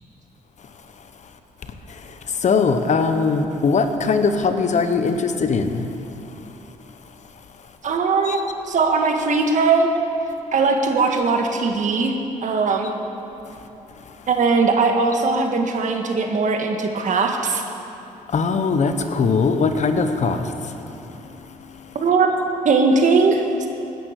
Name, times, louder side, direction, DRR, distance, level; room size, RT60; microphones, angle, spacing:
voice 1, 2.4-5.9 8.3-8.4 18.3-20.4, left 4 dB, 55° left, 8 dB, 1.1 m, -20 dB
voice 2, 7.8-8.4 8.7-9.9 10.5-12.1 12.4-12.9 14.3-17.6 21.9-22.3 22.6-23.7, right 4 dB, 60° right, 4 dB, 1.6 m, -19 dB
16.5 x 9.6 x 6.6 m, 2.9 s
cardioid pair, 70°, 15 cm